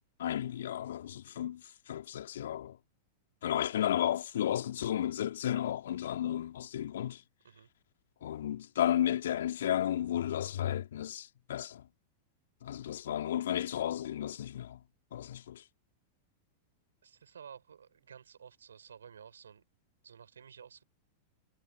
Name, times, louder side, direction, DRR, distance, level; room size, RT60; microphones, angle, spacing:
voice 1, 0.2-2.8 3.4-7.2 8.2-11.8 12.6-14.8 15.1-15.6, left 11 dB, 65° left, 3.0 m, -33 dB
voice 2, 17.0-19.6 20.0-20.8, right 7 dB, 75° right, 6.2 m, -53 dB
figure-of-eight pair, 95°, 0 cm